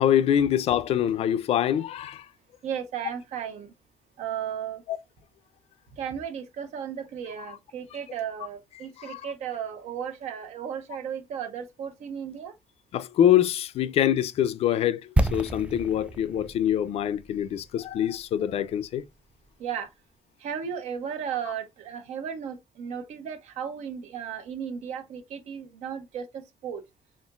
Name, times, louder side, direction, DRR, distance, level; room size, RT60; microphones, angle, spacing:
voice 1, 0.0-2.2 9.0-9.2 12.9-15.0 15.3-19.0, left 10 dB, 65° left, 0.4 m, -24 dB
voice 2, 2.6-3.7 4.2-4.8 6.0-12.5 19.6-19.9 20.4-26.8, right 8 dB, 85° right, 0.9 m, -35 dB
sound 1, 15.2-19.1 19.4-19.5, right 1 dB, 10° right, 0.3 m, -30 dB
4.3 x 3.7 x 2.4 m
cardioid pair, 125°, 11 cm